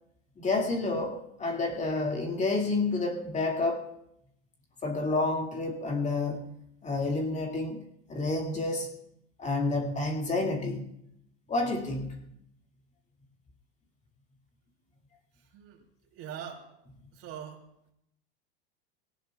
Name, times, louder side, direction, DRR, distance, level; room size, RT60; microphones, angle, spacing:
voice 1, 0.4-3.9 4.8-6.4 6.8-8.9 9.4-10.9 11.5-12.2, left 2 dB, 20° left, 1 dB, 2.2 m, -29 dB
voice 2, 15.4-15.8 16.1-16.7 17.1-17.7, right 9 dB, 45° right, 2 dB, 3.0 m, -42 dB
22.5 x 17.5 x 2.3 m, 0.77 s
hypercardioid pair, 95°, 32 cm